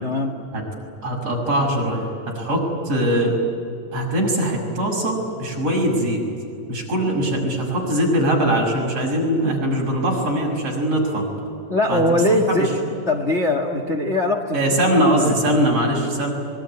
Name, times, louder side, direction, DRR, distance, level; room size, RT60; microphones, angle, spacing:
voice 1, 0.0-0.3 11.7-14.6 15.2-15.3, left 1 dB, 30° left, 3 dB, 1.3 m, -21 dB
voice 2, 1.0-3.4 3.9-6.2 6.7-11.3 11.9-12.0 12.5-12.7 14.5-16.3, right 1 dB, 50° right, 0 dB, 7.2 m, -21 dB
25.5 x 22.5 x 9.9 m, 2.6 s
omnidirectional pair, 3.6 m